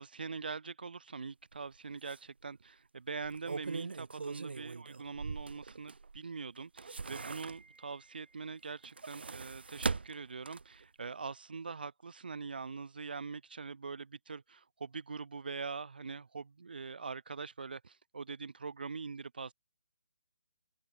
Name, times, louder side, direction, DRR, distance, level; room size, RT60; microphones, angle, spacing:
voice 1, 0.0-19.5, right 4 dB, 65° right, 2.1 m, -43 dB
sound 1, 1.5-1.7 2.1-2.2 3.1-6.2 6.6-7.9 8.7-10.8 11.2-11.3, right 4 dB, 85° right, 1.6 m, -40 dB
open air
hypercardioid pair, 175°, 5 cm